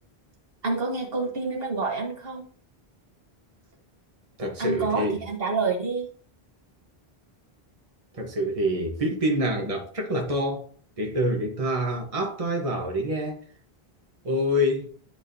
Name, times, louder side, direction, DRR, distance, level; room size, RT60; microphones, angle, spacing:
voice 1, 0.6-2.4 4.6-6.1, right 4 dB, 65° right, 1.5 m, -28 dB
voice 2, 4.4-5.2 8.1-10.6 11.0-13.4 14.2-14.9, equal, 35° right, 1.3 m, -26 dB
10.0 x 4.8 x 2.7 m
omnidirectional pair, 1.0 m